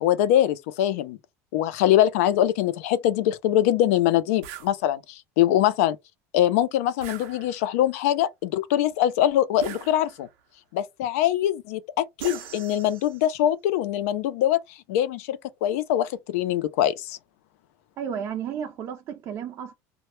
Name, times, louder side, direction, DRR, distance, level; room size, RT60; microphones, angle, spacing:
voice 1, 0.0-1.2 1.5-6.0 6.3-10.3 10.7-17.2, left 12 dB, 90° left, 0.4 m, -23 dB
sound 1, 4.4-4.7 7.0-7.8 9.6-10.4 12.2-13.3, right 9 dB, 85° right, 0.6 m, -40 dB
voice 2, 18.0-19.7, right 8 dB, 40° right, 0.4 m, -33 dB
2.1 x 2.1 x 3.0 m
cardioid pair, 150°, 8 cm